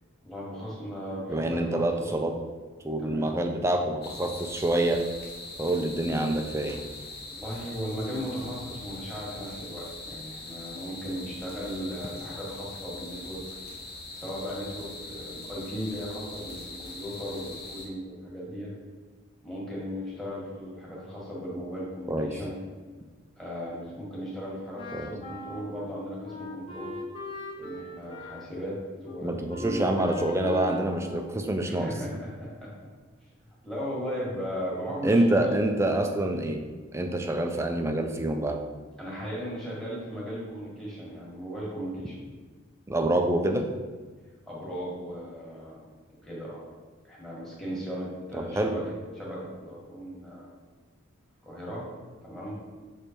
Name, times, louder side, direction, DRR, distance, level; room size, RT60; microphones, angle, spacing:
voice 1, 0.2-2.1 3.0-3.3 7.3-13.4 14.2-18.7 19.4-22.6 23.4-26.9 27.6-29.9 31.7-32.7 33.6-35.5 36.3-36.4 39.0-42.1 44.5-45.9 46.2-46.6 47.0-48.8 49.1-50.5 51.4-51.9 52.2-52.6, equal, ahead, -6 dB, 1.5 m, -37 dB
voice 2, 1.3-2.3 2.8-5.0 5.6-6.8 22.1-22.3 24.9-25.1 29.2-31.9 35.0-36.6 36.9-38.6 42.9-43.7 48.4-48.7, right 1 dB, 15° right, 5 dB, 0.4 m, -26 dB
sound 1, 4.0-17.9, left 2 dB, 50° left, 0.9 m, -42 dB
Wind instrument woodwind instrument, 24.7-32.0, left 1 dB, 25° left, 0.7 m, -40 dB
6.8 x 3.3 x 4.4 m, 1.4 s
head